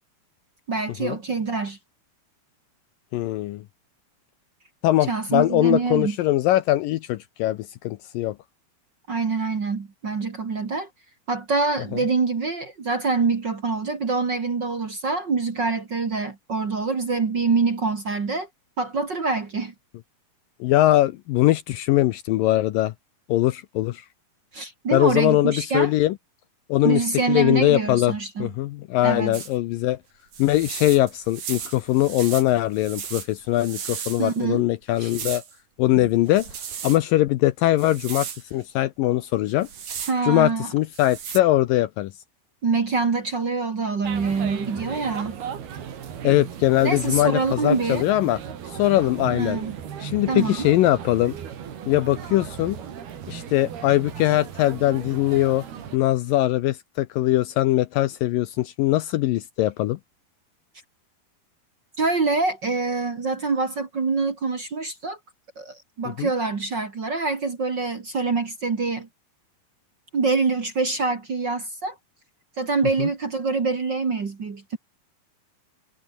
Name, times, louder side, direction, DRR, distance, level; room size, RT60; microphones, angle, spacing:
voice 1, 0.7-1.8 5.1-6.2 9.1-10.9 11.3-18.5 18.8-19.7 24.5-25.9 26.8-28.5 29.0-29.4 34.2-34.6 35.0-35.1 35.9-36.1 40.1-40.7 42.6-45.4 46.8-48.0 49.3-49.7 50.3-50.7 62.0-65.2 65.6-69.1 70.1-72.0 72.6-74.8, right 4 dB, 35° right, 2.0 m, -25 dB
voice 2, 3.1-3.6 4.8-8.4 20.6-22.9 23.3-24.1 24.9-26.2 26.7-28.1 28.4-30.0 30.4-35.4 35.8-36.5 36.8-39.7 40.2-42.1 46.2-48.4 48.7-49.6 50.0-51.3 51.9-52.8 53.3-55.6 55.9-60.0 66.2-66.3 73.0-73.1, left 15 dB, 80° left, 2.2 m, -21 dB
sound 1, 29.3-29.5 30.3-34.4 35.0-35.5 36.3-37.0 37.8-38.4 39.5-40.2 40.9-41.4, right 7 dB, 55° right, 4.5 m, -36 dB
sound 2, 44.0-56.0, right 8 dB, 75° right, 4.9 m, -36 dB
omnidirectional pair, 4.6 m